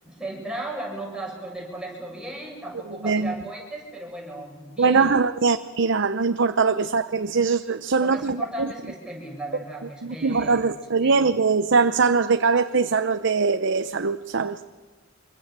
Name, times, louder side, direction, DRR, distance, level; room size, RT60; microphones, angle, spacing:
voice 1, 0.0-5.2 6.8-7.1 7.9-10.6 11.0-11.3, right 1 dB, 5° right, 7.9 m, -36 dB
voice 2, 4.8-8.7 10.0-14.6, right 4 dB, 65° right, 0.8 m, -22 dB
26.5 x 23.5 x 7.6 m
head